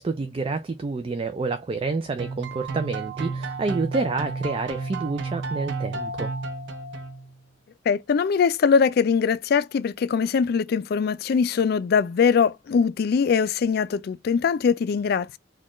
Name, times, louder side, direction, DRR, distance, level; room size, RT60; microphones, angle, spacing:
voice 1, 0.0-6.3, right 4 dB, 30° right, 0.3 m, -28 dB
sound 1, 2.2-7.4, right 3 dB, 85° right, 0.6 m, -32 dB
voice 2, 7.9-15.4, left 6 dB, 55° left, 0.3 m, -22 dB
4.2 x 2.3 x 3.0 m
head